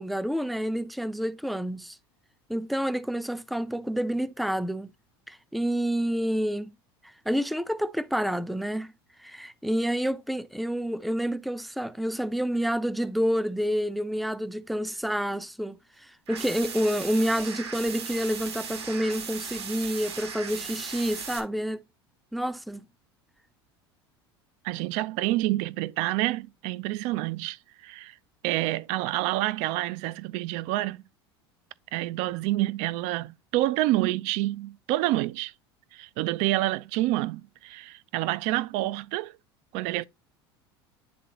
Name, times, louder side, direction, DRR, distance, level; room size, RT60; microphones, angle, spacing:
voice 1, 0.0-2.0 2.5-4.9 5.3-6.7 7.0-8.9 9.2-21.8 22.3-22.8, equal, ahead, 0.6 m, -28 dB
sound 1, 16.3-21.4, right 6 dB, 85° right, 1.8 m, -37 dB
voice 2, 24.6-28.2 28.4-31.0 31.9-35.5 35.9-39.3 39.7-40.0, right 17 dB, 60° right, 0.5 m, -28 dB
10.5 x 3.7 x 3.0 m
hypercardioid pair, 80°, 13 cm